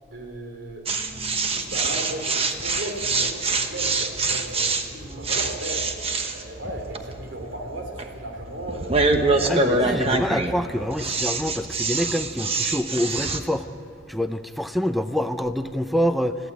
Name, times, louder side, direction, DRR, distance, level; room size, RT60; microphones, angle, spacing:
voice 1, 0.1-0.9 1.3-5.9 6.2-10.0 10.6-10.9, right 1 dB, 55° right, 3 dB, 3.1 m, -35 dB
sound 1, 0.9-13.4, right 3 dB, 30° right, 1.1 m, -25 dB
voice 2, 9.5-13.7 14.1-16.4, equal, ahead, 10 dB, 0.6 m, -26 dB
21.5 x 15.0 x 8.2 m, 2.6 s
head